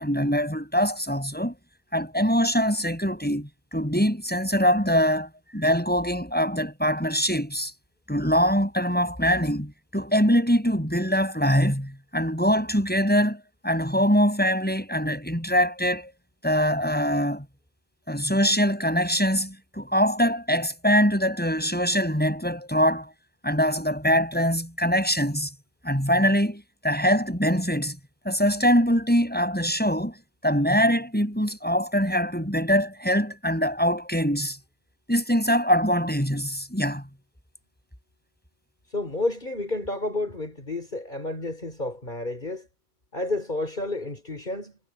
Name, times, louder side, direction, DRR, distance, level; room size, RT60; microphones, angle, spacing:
voice 1, 0.0-1.5 1.9-7.7 8.1-16.1 16.4-17.5 18.1-23.1 23.4-25.5 25.8-28.0 28.2-30.2 30.4-34.6 35.1-37.0, equal, 10° left, 8.0 m, -23 dB
voice 2, 38.9-42.7 43.1-44.8, left 2 dB, 50° left, 4.9 m, -30 dB
omnidirectional pair, 1.0 m